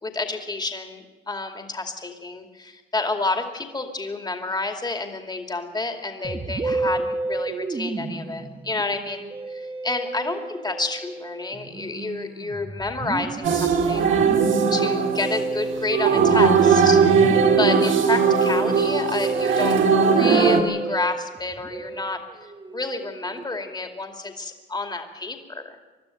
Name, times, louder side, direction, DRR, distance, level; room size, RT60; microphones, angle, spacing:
voice 1, 0.0-14.2 14.7-17.0 17.6-25.8, left 3 dB, 20° left, 5 dB, 2.5 m, -29 dB
Musical instrument, 6.2-23.8, right 3 dB, 25° right, 1.1 m, -32 dB
sound 1, 13.4-20.6, right 6 dB, 75° right, 2.3 m, -19 dB
22.0 x 12.5 x 9.5 m, 1.3 s
cardioid pair, 90°, 20 cm